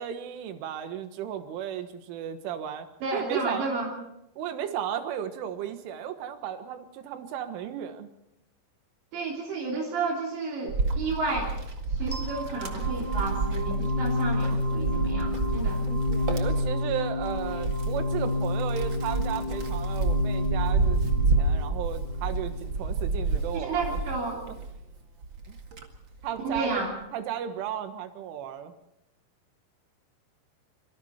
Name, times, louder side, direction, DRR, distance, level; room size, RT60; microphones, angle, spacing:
voice 1, 0.0-3.7 4.4-8.1 16.3-21.0 21.4-24.0 24.5-24.6 25.5-25.6 26.2-28.7, right 9 dB, 85° right, 8 dB, 4.0 m, -34 dB
voice 2, 3.0-3.9 9.1-11.5 11.9-15.8 23.5-24.4 26.4-26.9, right 3 dB, 70° right, -2 dB, 5.4 m, -31 dB
Wind, 10.7-24.8 25.2-26.7, right 3 dB, 50° right, 1.4 m, -29 dB
sound 1, 12.1-23.0, left 2 dB, 10° left, 3.8 m, -30 dB
26.0 x 24.0 x 4.4 m, 0.81 s
omnidirectional pair, 5.4 m